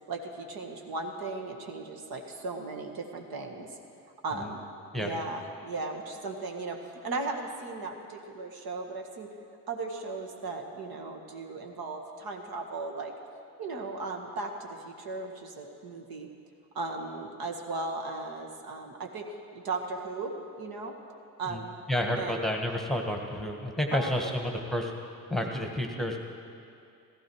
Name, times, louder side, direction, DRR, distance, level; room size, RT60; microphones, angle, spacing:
voice 1, 0.1-3.7 4.2-4.6 5.0-9.3 9.7-13.1 13.6-16.3 16.7-19.3 19.6-20.3 20.6-20.9 21.4-21.7 22.2-22.4 23.9-24.4, right 3 dB, 50° right, 2 dB, 1.7 m, -36 dB
voice 2, 21.9-24.9 25.3-26.2, left 1 dB, ahead, 2 dB, 1.6 m, -30 dB
15.5 x 15.5 x 4.7 m, 2.5 s
figure-of-eight pair, 50°, 48 cm